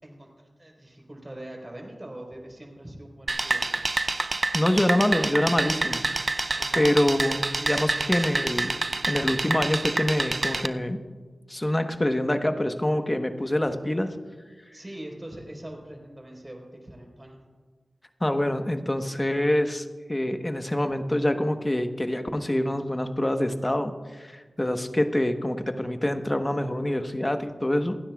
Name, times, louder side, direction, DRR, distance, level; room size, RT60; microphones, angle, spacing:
voice 1, 0.0-3.8 6.6-7.0 14.7-17.4, right 1 dB, 30° right, 0 dB, 4.2 m, -42 dB
sound 1, 3.3-10.7, right 2 dB, 50° right, 0.5 m, -27 dB
voice 2, 4.5-6.3 6.7-8.7 9.1-11.0 11.5-14.1 18.2-28.0, left 1 dB, 25° left, 7 dB, 1.1 m, -26 dB
28.5 x 9.9 x 2.4 m, 1.5 s
cardioid pair, 50°, 0 cm